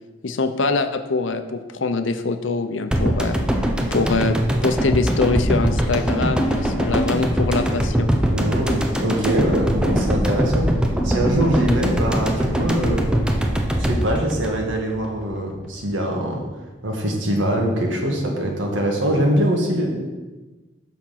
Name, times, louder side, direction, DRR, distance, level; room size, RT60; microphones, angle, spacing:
voice 1, 0.2-3.4 3.9-4.4 4.6-8.1, left 3 dB, 85° left, 9 dB, 0.7 m, -23 dB
sound 1, 2.9-15.2 15.5-15.6, equal, 5° right, 0.7 m, -22 dB
voice 2, 8.3-13.1 13.8-16.4 16.8-19.9, right 1 dB, 85° right, 0 dB, 1.7 m, -23 dB
7.1 x 5.9 x 5.8 m, 1.2 s
head